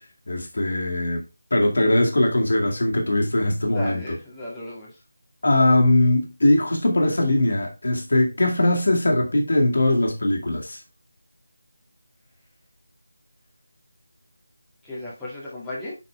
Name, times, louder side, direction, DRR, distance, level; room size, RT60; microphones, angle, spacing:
voice 1, 0.3-1.2 1.5-4.2 5.4-10.8, left 1 dB, 60° left, 2.1 m, -20 dB
voice 2, 3.7-4.9 14.8-16.0, left 1 dB, 5° left, 2.3 m, -34 dB
7.1 x 5.8 x 3.4 m
figure-of-eight pair, 160°, 0 cm